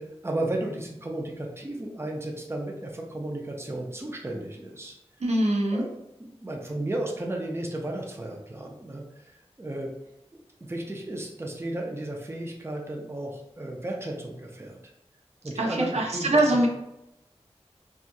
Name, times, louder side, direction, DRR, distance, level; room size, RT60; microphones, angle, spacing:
voice 1, 0.0-5.0 5.7-5.9 6.2-9.9 10.3-10.4 10.7-14.8 15.4-16.7, right 1 dB, 20° right, 0 dB, 0.5 m, -34 dB
voice 2, 5.2-5.8 15.6-16.7, right 1 dB, 75° right, -1 dB, 0.5 m, -23 dB
2.8 x 2.3 x 2.5 m, 0.86 s
wide cardioid pair, 55°, 11 cm